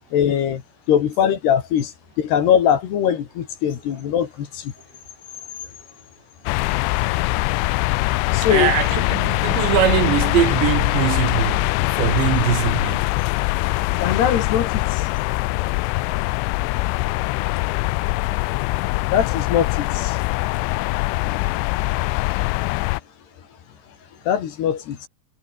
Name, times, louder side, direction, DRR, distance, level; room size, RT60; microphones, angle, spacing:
voice 1, 0.1-0.6 0.9-1.9 2.2-4.7 8.3-8.7 14.0-15.0 19.1-20.2 24.3-25.1, left 9 dB, 65° left, 4.1 m, -21 dB
sound 1, 6.5-23.0, left 22 dB, 85° left, 3.1 m, -22 dB
voice 2, 8.4-13.1, right 11 dB, 70° right, 3.9 m, -22 dB
omnidirectional pair, 5.5 m